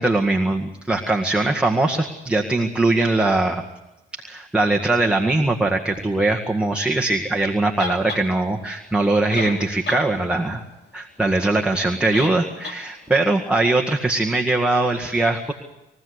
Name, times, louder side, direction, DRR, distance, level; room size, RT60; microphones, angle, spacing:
voice 1, 0.0-3.6 4.2-10.6 10.9-15.5, right 2 dB, 5° right, 0 dB, 1.9 m, -21 dB
sound 1, 7.8-8.2 9.0-9.1 9.3-10.0 10.4-10.5 12.1-12.4 12.6-12.8, left 4 dB, 60° left, 2.9 m, -30 dB
23.5 x 15.5 x 8.2 m, 0.98 s
cardioid pair, 90°, 20 cm